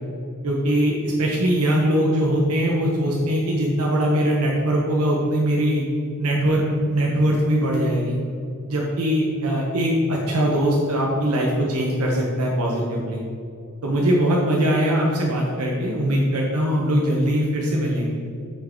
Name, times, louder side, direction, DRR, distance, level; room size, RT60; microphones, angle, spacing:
voice 1, 0.4-5.8 6.2-8.2 8.7-13.2 13.8-18.2, equal, 75° right, -3 dB, 1.0 m, -21 dB
9.1 x 4.7 x 4.5 m, 2.5 s
head